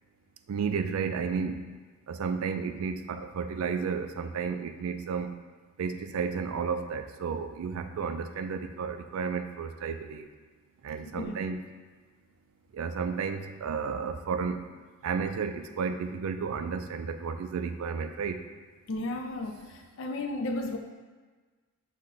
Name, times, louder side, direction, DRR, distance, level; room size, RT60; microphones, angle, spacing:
voice 1, 0.5-1.8 2.1-5.3 5.8-10.3 10.8-11.6 12.7-14.6 15.0-18.4, right 5 dB, 75° right, 7 dB, 0.3 m, -32 dB
voice 2, 18.9-19.6 20.0-20.8, left 2 dB, 55° left, 5 dB, 0.4 m, -33 dB
6.1 x 2.1 x 3.7 m, 1.4 s
head